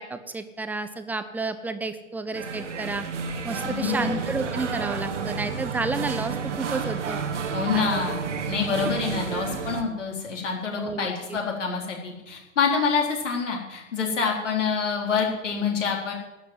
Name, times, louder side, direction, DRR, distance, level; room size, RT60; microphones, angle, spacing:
voice 1, 0.0-3.1 3.4-7.2 7.7-8.0 10.8-11.4, right 3 dB, 5° right, 10 dB, 0.5 m, -31 dB
sound 1, 2.3-9.8, right 6 dB, 65° right, 1.6 m, -31 dB
voice 2, 3.6-4.2 7.5-16.1, left 5 dB, 65° left, 0 dB, 4.1 m, -27 dB
13.0 x 8.1 x 9.5 m, 1.0 s
figure-of-eight pair, 105°, 39 cm